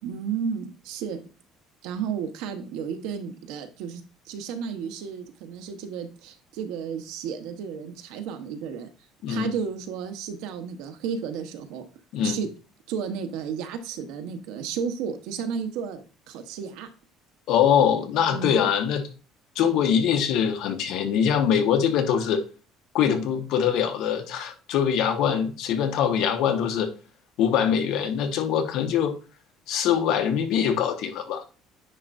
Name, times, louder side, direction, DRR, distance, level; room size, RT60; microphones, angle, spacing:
voice 1, 0.0-1.2 1.8-4.0 4.3-8.9 9.3-11.8 12.2-12.5 12.9-16.9 18.3-18.7, right 7 dB, 85° right, 7 dB, 1.1 m, -33 dB
voice 2, 17.5-19.0 19.5-22.4 22.9-26.9 27.4-29.1 29.7-31.4, left 8 dB, 70° left, 6 dB, 1.4 m, -23 dB
9.7 x 4.3 x 2.6 m, 0.34 s
cardioid pair, 130°, 0 cm